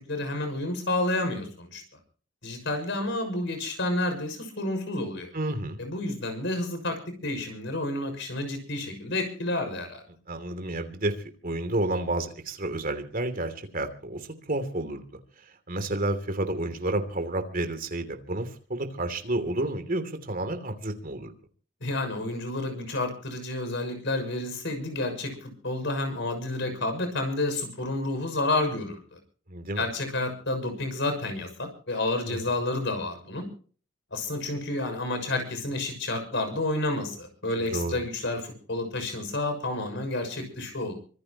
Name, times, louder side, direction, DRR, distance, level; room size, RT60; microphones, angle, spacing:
voice 1, 0.1-1.8 2.4-5.3 5.8-10.0 21.8-29.0 29.8-33.5 34.1-40.9, left 2 dB, 65° left, 7 dB, 6.4 m, -30 dB
voice 2, 5.3-5.8 10.3-11.1 11.4-15.0 15.7-21.3 29.5-29.9 32.3-32.4 37.6-38.0, right 1 dB, 45° right, 7 dB, 2.9 m, -30 dB
25.0 x 15.5 x 3.0 m, 0.42 s
head